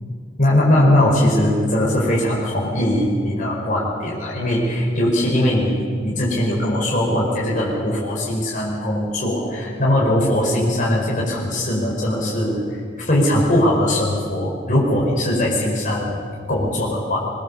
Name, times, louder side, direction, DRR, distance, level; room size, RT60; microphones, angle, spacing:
voice 1, 0.4-16.2 16.5-17.2, left 1 dB, 45° left, -4 dB, 5.1 m, -20 dB
23.0 x 22.0 x 7.2 m, 2.1 s
head